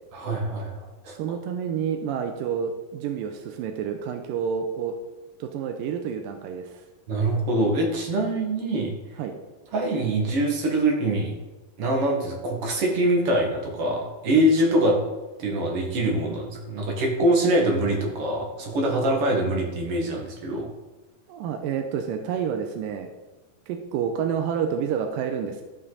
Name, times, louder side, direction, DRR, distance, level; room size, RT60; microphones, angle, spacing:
voice 1, 0.1-1.1 7.1-8.9 9.7-11.3 11.8-15.0 15.4-20.7, right 1 dB, 50° right, 0 dB, 2.2 m, -24 dB
voice 2, 1.2-5.0 5.4-6.8 9.2-9.4 21.3-23.1 23.7-25.6, right 7 dB, 85° right, 5 dB, 2.3 m, -29 dB
14.0 x 5.7 x 4.0 m, 1.1 s
omnidirectional pair, 3.9 m